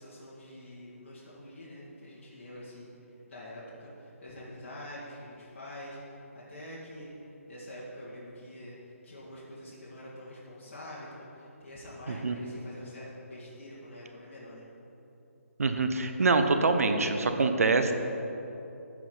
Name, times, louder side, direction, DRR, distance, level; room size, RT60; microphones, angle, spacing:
voice 1, 0.0-2.9 3.3-8.8 9.0-14.6, left 1 dB, 50° left, -7 dB, 2.1 m, -46 dB
voice 2, 15.6-17.9, right 3 dB, 70° right, 7 dB, 0.8 m, -25 dB
14.5 x 4.9 x 4.0 m, 3.0 s
figure-of-eight pair, 155°, 8 cm